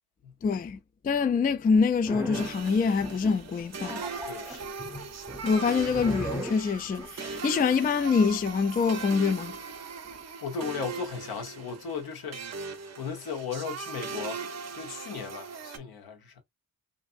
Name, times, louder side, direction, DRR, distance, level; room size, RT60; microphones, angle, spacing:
voice 1, 0.4-0.8 1.0-4.0 5.4-9.5, left 5 dB, 25° left, 0.3 m, -25 dB
sound 1, 2.1-2.6 3.0-3.5 3.8-7.1, equal, 5° right, 0.7 m, -38 dB
sound 2, 2.3-15.8, right 5 dB, 40° right, 0.6 m, -39 dB
voice 2, 4.2-4.8 10.4-12.7 13.0-16.4, left 6 dB, 65° left, 1.0 m, -37 dB
2.5 x 2.5 x 2.5 m
supercardioid pair, 45°, 39 cm